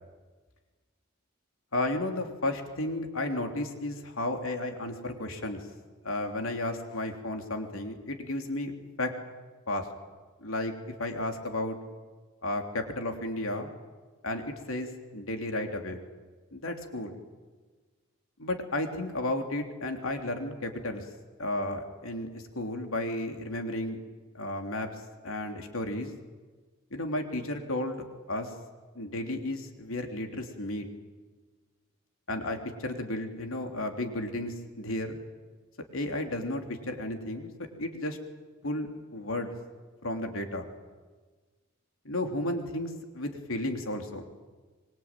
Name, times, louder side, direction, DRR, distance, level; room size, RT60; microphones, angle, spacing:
voice 1, 1.7-5.6 6.0-8.7 9.0-9.1 9.7-9.9 10.4-10.7 11.0-11.8 12.4-13.7 14.2-16.0 16.5-17.1 18.4-21.0 21.4-24.0 24.3-24.9 25.2-26.1 26.9-28.5 28.9-30.9 32.3-35.2 35.9-37.5 37.8-38.2 38.6-39.5 40.0-40.7 42.0-44.2, left 1 dB, 75° left, 4 dB, 3.4 m, -33 dB
25.5 x 23.0 x 9.1 m, 1.4 s
head